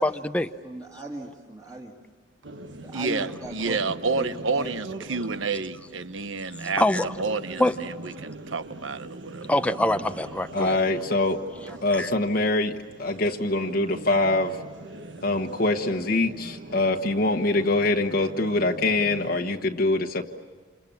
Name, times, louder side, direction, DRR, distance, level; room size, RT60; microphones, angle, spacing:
voice 1, 0.0-0.5 6.8-7.1 7.6-7.7 9.5-10.8 11.9-12.1, left 1 dB, 5° left, 8 dB, 0.7 m, -24 dB
voice 2, 0.6-2.0 2.8-3.8 4.2-4.7 5.0-5.2 11.7-11.8, right 1 dB, 20° right, -2 dB, 2.5 m, -38 dB
sound 1, 2.4-19.4, right 2 dB, 65° right, 1.4 m, -42 dB
voice 3, 2.9-6.8 7.2-9.5, right 4 dB, 85° right, 12 dB, 1.1 m, -29 dB
voice 4, 10.5-11.4 11.8-14.6 15.2-20.2, left 2 dB, 50° left, 2 dB, 1.3 m, -24 dB
28.5 x 28.0 x 7.3 m, 1.5 s
head